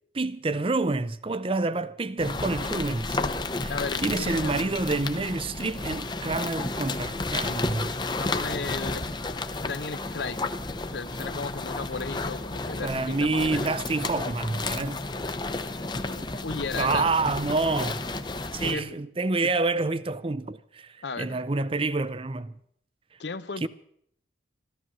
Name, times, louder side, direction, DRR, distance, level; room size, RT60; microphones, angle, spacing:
voice 1, 0.1-3.2 3.6-7.9 12.8-15.1 16.8-18.0 18.5-22.5 23.6-23.7, right 3 dB, 30° right, 0.5 m, -28 dB
sound 1, 2.2-18.8, left 3 dB, 25° left, 0.7 m, -32 dB
voice 2, 3.7-4.5 8.2-9.0 9.6-10.4 10.8-13.7 16.1-17.4 18.6-19.0 19.4-19.5 21.0-21.4 23.2-23.7, left 4 dB, 65° left, 0.8 m, -35 dB
13.5 x 13.5 x 7.3 m
head